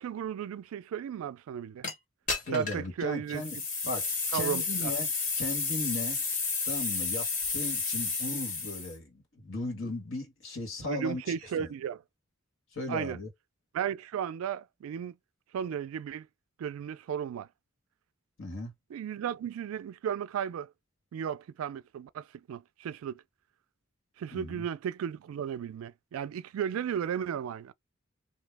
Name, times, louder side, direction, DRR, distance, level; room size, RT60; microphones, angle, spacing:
voice 1, 0.0-1.9 2.5-3.4 4.3-4.9 10.9-12.0 12.9-13.2 13.7-15.2 15.5-16.3 16.6-17.5 18.9-20.7 21.1-23.2 24.2-27.7, right 8 dB, 90° right, 0.3 m, -34 dB
sound 1, 1.8-1.9 2.3-2.9 3.3-8.9, left 4 dB, 40° left, 1.0 m, -31 dB
voice 2, 2.4-3.6 3.8-6.2 6.6-11.7 12.7-13.3 18.4-18.7 24.3-24.7, left 2 dB, 70° left, 1.5 m, -37 dB
2.8 x 2.1 x 3.3 m
head